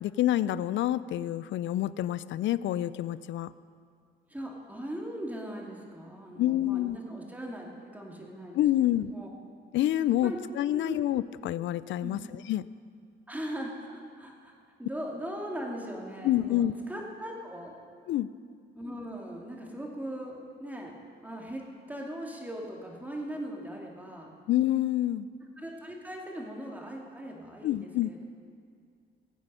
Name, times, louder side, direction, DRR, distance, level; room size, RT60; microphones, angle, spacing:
voice 1, 0.0-3.5 6.4-7.0 8.6-9.1 9.7-12.6 16.2-16.7 18.1-18.3 24.5-25.3 27.6-28.1, left 13 dB, 70° left, 17 dB, 0.4 m, -27 dB
voice 2, 4.3-9.3 10.1-10.4 10.7-10.9 12.0-12.2 13.3-14.5 14.8-17.7 18.8-20.9 21.2-21.6 21.9-24.3 25.6-28.2, equal, 10° right, -1 dB, 2.5 m, -39 dB
19.0 x 8.2 x 5.6 m, 2.2 s
cardioid pair, 90°, 20 cm